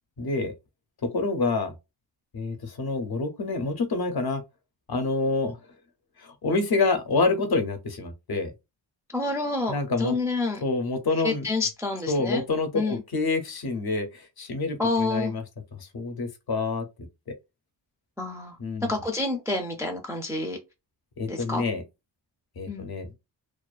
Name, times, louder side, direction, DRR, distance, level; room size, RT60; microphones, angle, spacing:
voice 1, 0.2-0.5 1.1-1.7 2.3-4.4 4.9-5.6 6.4-8.5 9.7-10.1 10.6-11.5 12.1-15.4 15.7-16.9 18.6-18.9 21.2-21.8 22.6-23.1, left 3 dB, 55° left, 0.6 m, -27 dB
voice 2, 9.1-10.6 11.2-12.4 12.7-13.0 14.8-15.3 18.2-18.6 18.9-20.6 21.3-21.6 22.7-22.9, left 3 dB, 5° right, 0.3 m, -28 dB
2.4 x 2.2 x 2.3 m
wide cardioid pair, 145°, 45 cm